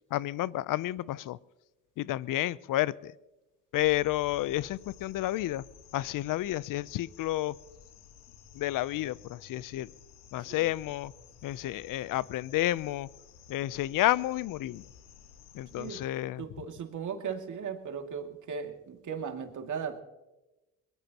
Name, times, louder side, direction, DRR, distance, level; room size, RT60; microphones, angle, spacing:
voice 1, 0.1-1.4 2.0-3.1 3.7-5.6 5.9-7.5 8.5-9.9 10.3-11.1 11.4-13.1 13.5-14.8 15.5-16.4, left 15 dB, 55° left, 21 dB, 0.6 m, -30 dB
sound 1, 3.7-16.1, left 7 dB, 75° left, 1.7 m, -54 dB
voice 2, 15.7-16.0 16.4-20.0, right 6 dB, 50° right, 4 dB, 2.4 m, -37 dB
22.5 x 20.0 x 2.9 m, 1.0 s
supercardioid pair, 70°, 39 cm